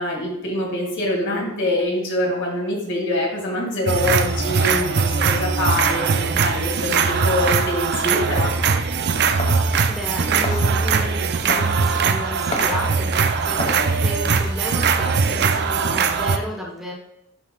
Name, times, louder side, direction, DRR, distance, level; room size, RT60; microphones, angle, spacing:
voice 1, 0.0-8.7, left 1 dB, 60° left, -1 dB, 2.2 m, -24 dB
sound 1, 3.9-16.4, right 5 dB, 50° right, 0.5 m, -21 dB
sound 2, 7.4-14.1, left 2 dB, 30° left, 0.8 m, -34 dB
voice 2, 9.5-16.9, equal, ahead, -3 dB, 1.1 m, -33 dB
10.5 x 5.5 x 2.3 m, 0.88 s
head